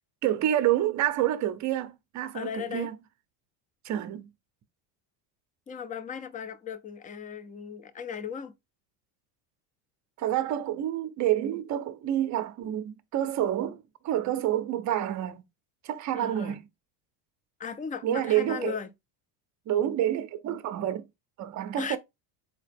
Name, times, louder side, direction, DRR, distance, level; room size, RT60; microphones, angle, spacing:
voice 1, 0.2-3.0 3.8-4.3 10.2-15.4 15.8-16.6 18.0-18.8 19.7-21.1 21.4-22.0, right 12 dB, 40° right, 0.6 m, -28 dB
voice 2, 2.3-2.9 5.7-8.5 16.1-16.6 17.6-18.9 21.8-22.0, left 7 dB, 20° left, 0.4 m, -37 dB
4.0 x 2.9 x 3.4 m
supercardioid pair, 120°, 46 cm